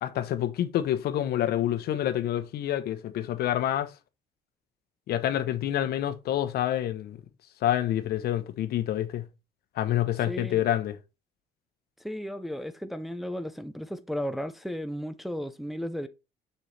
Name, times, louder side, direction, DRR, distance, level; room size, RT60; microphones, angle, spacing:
voice 1, 0.0-3.9 5.1-7.2 7.6-9.2 9.8-11.0, left 12 dB, 70° left, 0.9 m, -27 dB
voice 2, 10.3-10.6 12.0-16.1, equal, ahead, 0.6 m, -34 dB
6.6 x 5.6 x 3.3 m
cardioid pair, 110°, 17 cm